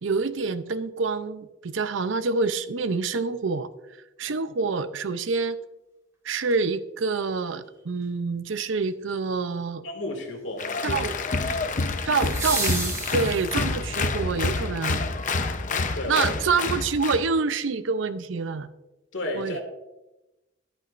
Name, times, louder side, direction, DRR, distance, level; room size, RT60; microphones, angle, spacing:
voice 1, 0.0-3.7 4.2-5.6 6.2-9.8 10.8-11.2 12.1-15.1 16.1-18.7 19.3-19.6, right 4 dB, 85° right, 13 dB, 0.6 m, -27 dB
sound 1, 6.5-6.6 12.1-13.9 16.1-16.2, right 2 dB, 15° right, 2.1 m, -32 dB
voice 2, 9.8-11.0 15.9-16.3 19.1-19.6, left 1 dB, 75° left, 3 dB, 2.1 m, -32 dB
Applause, 10.6-17.3, left 3 dB, 45° left, 0.8 m, -28 dB
13.0 x 11.0 x 2.5 m, 1.0 s
head